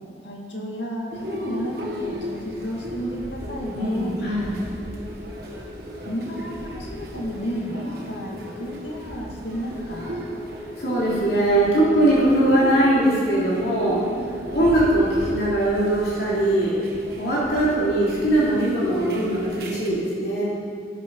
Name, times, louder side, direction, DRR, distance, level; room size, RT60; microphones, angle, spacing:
voice 1, 0.2-4.2 6.0-10.2 14.1-14.7, equal, 85° left, -1 dB, 2.4 m, -32 dB
sound 1, 1.1-19.9, equal, 55° right, 2.1 m, -35 dB
voice 2, 3.8-4.5 10.8-14.0 14.5-16.8 17.2-20.4, right 1 dB, 60° left, -8 dB, 3.6 m, -21 dB
12.0 x 11.5 x 5.6 m, 2.1 s
head